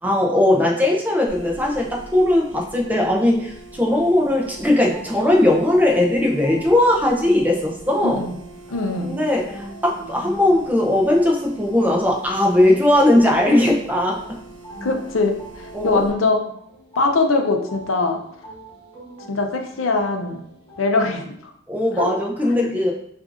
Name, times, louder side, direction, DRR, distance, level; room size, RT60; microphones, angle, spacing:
voice 1, 0.0-8.2 9.0-14.4 15.7-16.0 21.7-22.9, left 1 dB, 10° right, -1 dB, 0.5 m, -19 dB
sound 1, 1.3-16.1, right 2 dB, 60° right, 1.2 m, -43 dB
sound 2, 4.3-21.1, right 1 dB, 25° left, 1.4 m, -42 dB
voice 2, 8.0-8.4 8.7-9.1 14.8-16.4 17.0-18.2 19.3-20.4 20.8-21.4 22.0-22.1, left 3 dB, 90° left, 4 dB, 0.6 m, -21 dB
6.1 x 2.6 x 2.5 m, 0.69 s
head